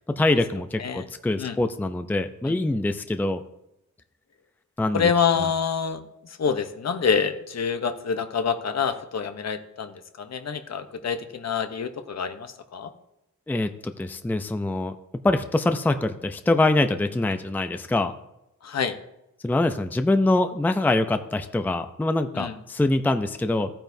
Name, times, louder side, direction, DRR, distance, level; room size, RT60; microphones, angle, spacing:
voice 1, 0.1-3.4 4.8-5.1 5.4-5.5 13.5-18.1 19.4-23.7, left 2 dB, 5° left, 8 dB, 0.5 m, -24 dB
voice 2, 4.9-6.0 6.4-12.9 18.6-18.9 22.3-22.5, left 6 dB, 60° left, 8 dB, 0.9 m, -26 dB
14.5 x 8.8 x 2.7 m, 0.85 s
wide cardioid pair, 100°, 31 cm